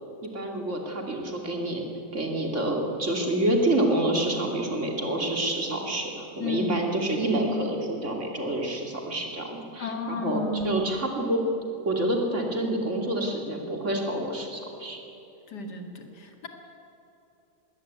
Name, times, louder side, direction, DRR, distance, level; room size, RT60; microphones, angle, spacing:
voice 1, 0.2-1.8 2.1-11.4 11.8-15.0, right 1 dB, 45° right, 2 dB, 3.0 m, -28 dB
voice 2, 6.4-6.7 9.8-10.8 15.5-16.5, left 2 dB, 85° left, 4 dB, 2.7 m, -32 dB
20.5 x 17.5 x 9.4 m, 2.9 s
omnidirectional pair, 1.7 m